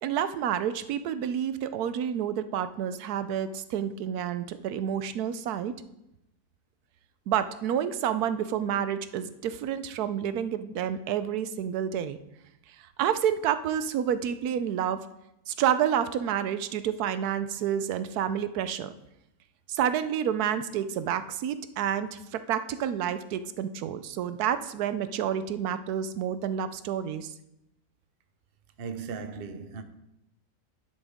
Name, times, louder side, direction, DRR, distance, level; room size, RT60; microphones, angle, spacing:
voice 1, 0.0-5.7 7.3-12.2 13.0-15.0 15.5-18.9 19.7-27.3, right 9 dB, 85° right, 1.1 m, -29 dB
voice 2, 28.8-29.8, right 5 dB, 45° right, 0.9 m, -37 dB
11.0 x 10.5 x 3.5 m
omnidirectional pair, 1.6 m